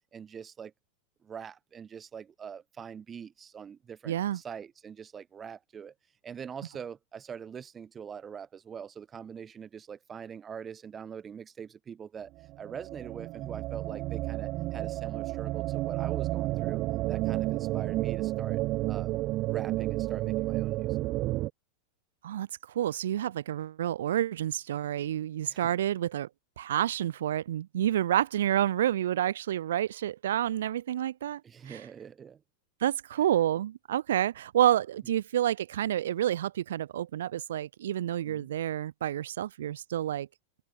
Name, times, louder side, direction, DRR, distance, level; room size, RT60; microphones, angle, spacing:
voice 1, 0.1-0.7 1.2-5.9 6.2-12.3 12.6-16.8 17.1-18.6 18.9-19.2 19.5-21.0 25.5-25.7 31.4-32.4 38.2-38.5, right 7 dB, 20° right, 3.2 m, -43 dB
voice 2, 4.0-4.4 22.2-22.5 22.7-26.3 26.6-31.4 31.7-31.8 32.8-40.3, right 11 dB, 90° right, 4.9 m, -29 dB
sound 1, 12.4-21.5, right 18 dB, 40° right, 1.8 m, -31 dB
supercardioid pair, 145°, 0 cm